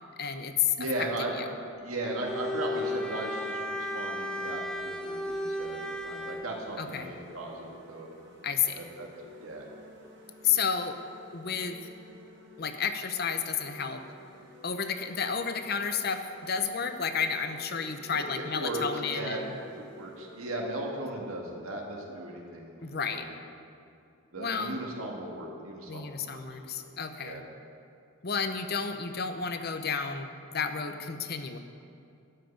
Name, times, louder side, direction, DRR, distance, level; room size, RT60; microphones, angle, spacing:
voice 1, 0.0-0.9 1.4-1.5 6.8-7.1 8.4-8.8 10.4-11.0 11.3-11.8 12.6-14.0 14.6-19.6 22.8-23.3 24.4-24.8 25.9-27.4 28.2-31.6, left 6 dB, 45° left, 8 dB, 0.7 m, -31 dB
voice 2, 0.8-1.5 1.8-8.1 8.8-9.1 9.4-9.7 18.1-22.8 23.1-23.3 24.3-26.4 26.8-26.9 27.2-27.4, right 1 dB, 90° right, 0 dB, 1.8 m, -37 dB
Bowed string instrument, 2.0-6.5, left 1 dB, 5° left, 0.6 m, -34 dB
sound 1, 4.4-20.5, equal, 55° right, 1.8 m, -53 dB
12.0 x 5.8 x 8.7 m, 2.5 s
head